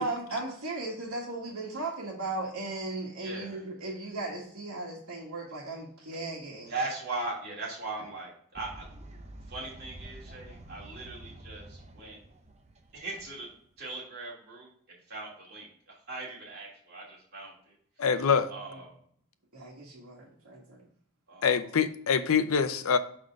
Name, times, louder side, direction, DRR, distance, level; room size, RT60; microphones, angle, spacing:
voice 1, 0.0-6.7 18.7-18.8 19.5-20.9, right 2 dB, 80° right, -5 dB, 1.6 m, -37 dB
voice 2, 3.2-3.6 6.7-8.9 9.5-12.2 12.9-18.1 18.5-19.0 21.3-21.8, right 3 dB, 45° right, -5 dB, 2.7 m, -40 dB
Fowl, 8.6-13.8, right 1 dB, 30° right, 0.7 m, -48 dB
voice 3, 18.0-18.5 21.4-23.0, left 6 dB, 75° left, 11 dB, 0.6 m, -25 dB
5.8 x 5.2 x 3.5 m, 0.62 s
head